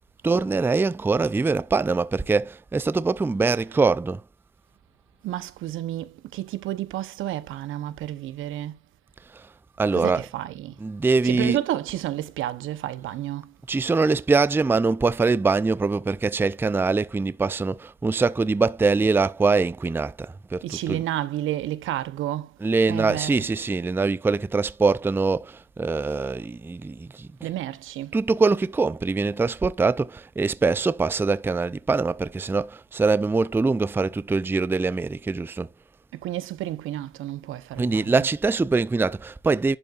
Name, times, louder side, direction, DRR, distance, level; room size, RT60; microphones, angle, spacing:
voice 1, 0.2-4.2 9.3-9.5 9.8-10.3 10.8-11.6 13.7-21.0 22.6-27.5 28.1-35.7 37.8-39.8, right 4 dB, 10° right, 0.4 m, -23 dB
voice 2, 5.2-8.8 9.9-10.8 11.2-13.5 20.6-22.6 22.9-23.5 27.4-28.2 36.1-38.3, right 13 dB, 85° right, 0.8 m, -31 dB
11.0 x 5.2 x 2.4 m
cardioid pair, 90°, 20 cm